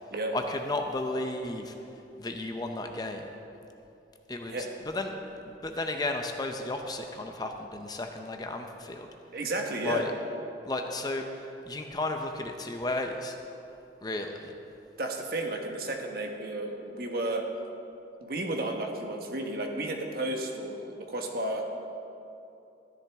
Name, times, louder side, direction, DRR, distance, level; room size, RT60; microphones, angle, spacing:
voice 1, 0.3-1.7 2.2-3.3 4.3-9.1 9.8-10.1 10.6-11.3 11.7-13.4 14.0-14.5, left 2 dB, 20° left, 4 dB, 0.6 m, -33 dB
voice 2, 9.3-10.0 15.0-17.5 18.2-21.6, right 2 dB, 55° right, 2 dB, 1.2 m, -32 dB
13.0 x 11.5 x 3.5 m, 2.7 s
head